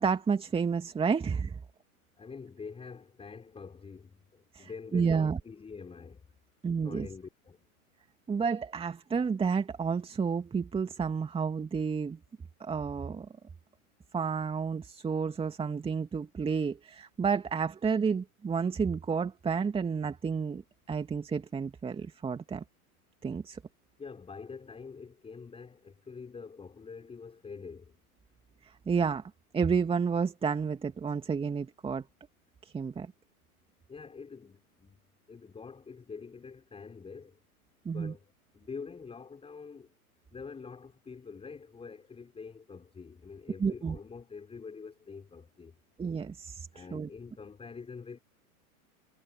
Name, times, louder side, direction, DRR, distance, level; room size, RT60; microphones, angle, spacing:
voice 1, 0.0-1.6 4.5-5.4 6.6-7.1 8.3-12.2 12.6-13.3 14.1-20.6 20.9-22.6 23.2-23.6 28.6-29.2 29.5-32.0 32.6-33.1 37.8-38.1 43.6-44.0 46.0-47.1, right 6 dB, 10° right, 2.5 m, -30 dB
voice 2, 2.2-6.2 6.8-7.6 24.0-27.9 33.9-35.0 35.3-37.4 37.9-38.2 38.5-39.9 40.3-45.7 46.7-48.2, left 5 dB, 15° left, 5.8 m, -46 dB
figure-of-eight pair, 100°, 45 cm